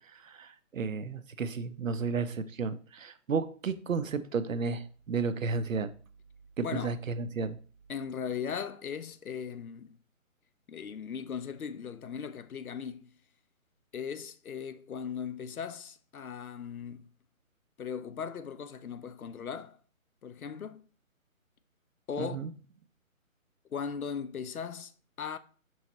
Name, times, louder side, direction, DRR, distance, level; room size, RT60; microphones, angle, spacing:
voice 1, 0.1-5.9 6.6-7.6 22.2-22.5, right 5 dB, 70° right, 0.5 m, -33 dB
voice 2, 6.6-7.0 7.9-10.0 10.7-13.1 13.9-17.1 17.8-19.8 20.2-20.8 22.1-22.5 23.7-25.4, left 7 dB, 85° left, 0.5 m, -38 dB
5.4 x 3.0 x 2.9 m
figure-of-eight pair, 145°, 42 cm